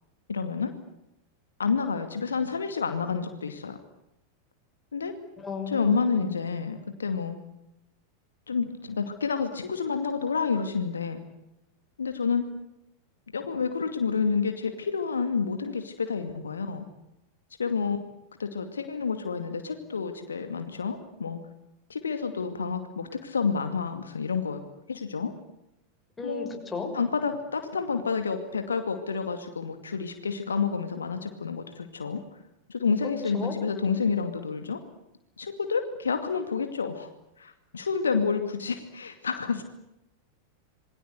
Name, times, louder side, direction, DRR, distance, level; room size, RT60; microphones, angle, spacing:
voice 1, 0.3-0.7 1.6-3.8 4.9-5.1 5.7-7.4 8.5-11.2 12.0-12.4 13.3-16.9 17.6-18.0 18.4-21.4 21.9-24.6 24.9-25.3 26.2-26.5 26.9-32.2 32.7-34.8 35.4-37.1 37.4-39.6, left 5 dB, 70° left, 8 dB, 2.4 m, -29 dB
voice 2, 5.4-6.4 26.2-26.9 33.3-33.5, left 5 dB, 15° left, 3 dB, 6.4 m, -35 dB
27.5 x 23.0 x 8.0 m, 0.87 s
figure-of-eight pair, 90°, 0 cm